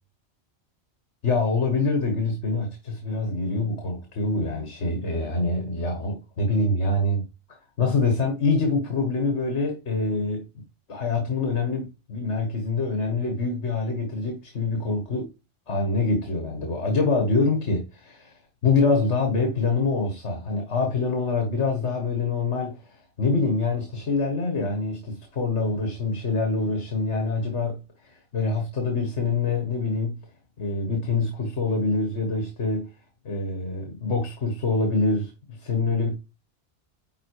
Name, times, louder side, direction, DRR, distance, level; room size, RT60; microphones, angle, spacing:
voice 1, 1.2-7.2 7.8-10.6 10.9-15.3 15.7-30.2 30.6-32.9 33.2-36.1, left 3 dB, 75° left, 1.9 m, -25 dB
10.5 x 3.9 x 4.8 m
omnidirectional pair, 1.2 m